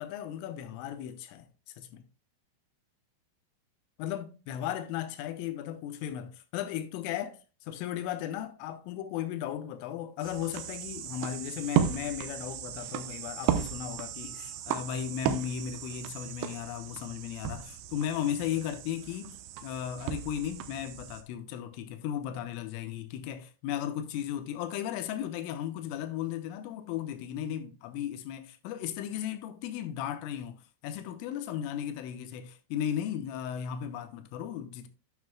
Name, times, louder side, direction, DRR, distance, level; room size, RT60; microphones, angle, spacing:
voice 1, 0.0-1.5 1.8-2.0 4.0-34.9, left 10 dB, 80° left, 3.4 m, -36 dB
sound 1, 10.2-21.2, right 10 dB, 85° right, 2.5 m, -35 dB
9.4 x 8.9 x 2.2 m
omnidirectional pair, 5.9 m